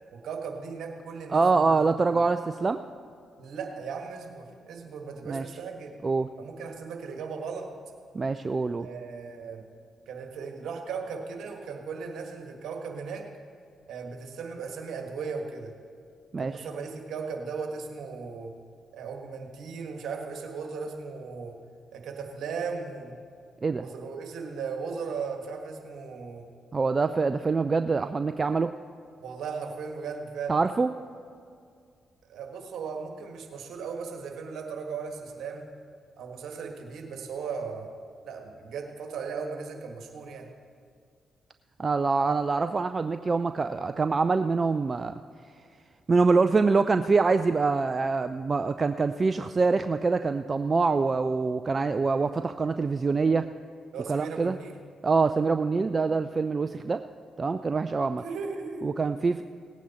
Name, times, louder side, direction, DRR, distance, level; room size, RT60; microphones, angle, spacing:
voice 1, 0.1-2.2 3.4-5.9 6.4-7.7 8.8-9.6 10.1-13.3 13.9-15.7 16.4-18.5 18.9-21.5 21.9-23.1 23.8-26.5 29.2-30.6 32.3-35.6 36.2-37.9 38.2-40.5 53.9-54.8 58.2-59.0, right 5 dB, 70° right, 3 dB, 1.6 m, -37 dB
voice 2, 1.3-2.8 5.3-5.4 6.0-6.3 8.1-8.9 16.3-16.6 23.6-23.9 26.7-28.7 30.5-30.9 41.8-45.2 46.1-53.5 54.1-54.6 55.0-57.0 57.4-58.2 58.8-59.4, right 4 dB, 40° right, 10 dB, 0.4 m, -25 dB
18.0 x 9.1 x 4.3 m, 2.2 s
hypercardioid pair, 45°, 0 cm